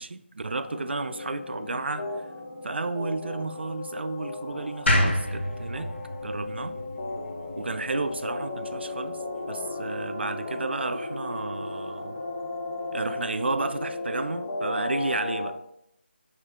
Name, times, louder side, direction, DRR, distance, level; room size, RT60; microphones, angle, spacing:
voice 1, 0.0-2.1 2.6-5.9 6.2-6.8 7.6-9.2 9.5-12.2 12.9-15.6, right 3 dB, 70° right, 11 dB, 0.3 m, -32 dB
sound 1, 0.6-15.5, left 2 dB, 25° left, 0.4 m, -35 dB
sound 2, 4.9-8.0, left 1 dB, 80° left, 0.9 m, -27 dB
3.7 x 3.2 x 3.6 m, 0.71 s
figure-of-eight pair, 165°, 6 cm